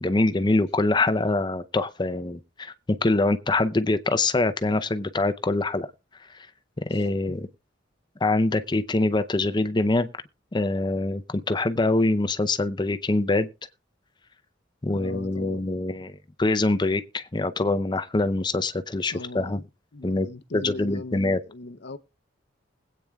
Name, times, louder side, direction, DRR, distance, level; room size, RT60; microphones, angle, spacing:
voice 1, 0.0-5.9 6.8-7.5 8.2-10.1 10.5-13.5 14.8-19.6 20.0-20.3 20.5-21.4, left 2 dB, 20° left, 0.6 m, -24 dB
voice 2, 6.9-7.4 14.9-15.6 19.1-22.0, left 2 dB, 60° left, 0.7 m, -39 dB
20.5 x 8.6 x 2.3 m
head